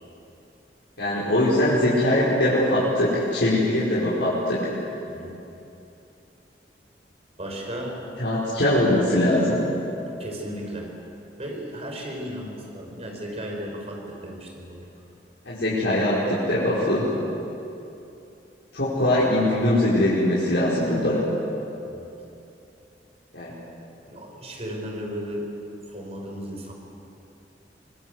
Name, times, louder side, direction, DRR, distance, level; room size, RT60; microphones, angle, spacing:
voice 1, 1.0-4.7 8.2-9.6 15.5-17.1 18.7-21.2 23.3-23.5, left 1 dB, 90° left, -8 dB, 5.2 m, -22 dB
voice 2, 5.1-5.4 7.4-8.0 10.0-10.9 11.4-14.9 21.9-22.1 24.1-25.5 25.9-26.7, equal, 35° right, 1 dB, 5.3 m, -35 dB
25.0 x 21.0 x 8.1 m, 2.8 s
head